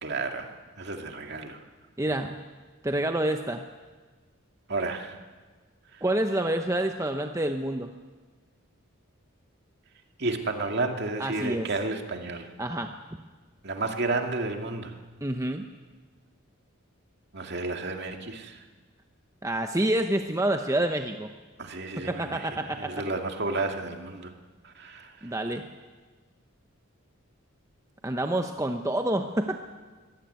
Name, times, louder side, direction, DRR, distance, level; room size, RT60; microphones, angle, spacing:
voice 1, 0.0-0.5 0.8-1.6 4.7-5.2 10.2-12.5 13.6-14.9 17.3-18.6 21.6-22.4 22.8-24.3 24.6-25.3, right 3 dB, 50° right, 4 dB, 2.3 m, -31 dB
voice 2, 2.0-2.4 2.8-3.7 6.0-7.9 11.2-11.7 12.6-12.9 15.2-15.6 19.4-21.3 22.0-23.0 25.2-25.6 28.0-29.6, right 1 dB, 15° right, 5 dB, 0.9 m, -28 dB
23.5 x 17.0 x 9.3 m, 1.4 s
head